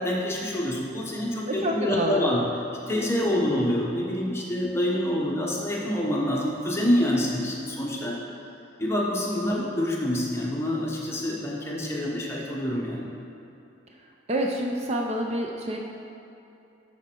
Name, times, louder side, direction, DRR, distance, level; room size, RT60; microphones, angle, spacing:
voice 1, 0.0-2.4 2.9-8.2 8.8-13.1, left 1 dB, 15° left, -3 dB, 0.9 m, -27 dB
voice 2, 1.5-2.3 3.2-3.3 9.4-9.6 14.3-15.8, right 1 dB, 35° right, 0 dB, 0.5 m, -28 dB
11.5 x 4.4 x 4.4 m, 2.7 s
head